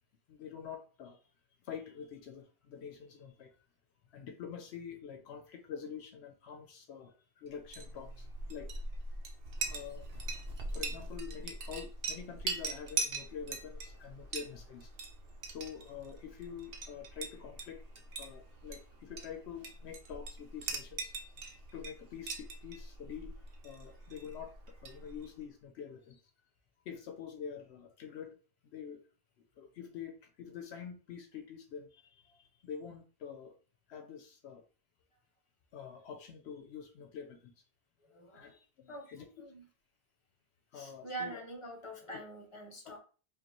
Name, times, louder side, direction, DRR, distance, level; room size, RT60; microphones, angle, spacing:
voice 1, 0.3-1.2 1.6-3.5 4.1-8.7 9.7-10.2 10.7-14.9 15.5-17.8 18.2-21.1 21.7-23.3 23.6-24.5 24.8-26.2 26.9-28.3 28.7-29.0 29.6-33.5 33.9-34.6 35.7-37.5 38.3-39.3 40.7-41.4 42.8-43.0, left 7 dB, 80° left, 0.8 m, -46 dB
Chink clink, 7.6-25.4, right 3 dB, 60° right, 0.9 m, -42 dB
voice 2, 38.0-38.5 38.9-39.6 40.7-43.0, right 2 dB, 30° left, 1.0 m, -45 dB
5.1 x 2.5 x 2.9 m
omnidirectional pair, 1.1 m